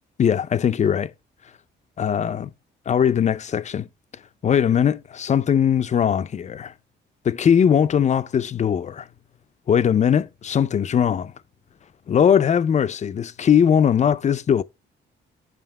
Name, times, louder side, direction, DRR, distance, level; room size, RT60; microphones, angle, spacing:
voice 1, 0.2-1.1 2.0-2.5 2.9-3.9 4.4-6.7 7.2-9.1 9.7-11.3 12.1-14.6, left 8 dB, 35° left, 0.4 m, -20 dB
5.8 x 5.0 x 4.6 m
cardioid pair, 90°, 20 cm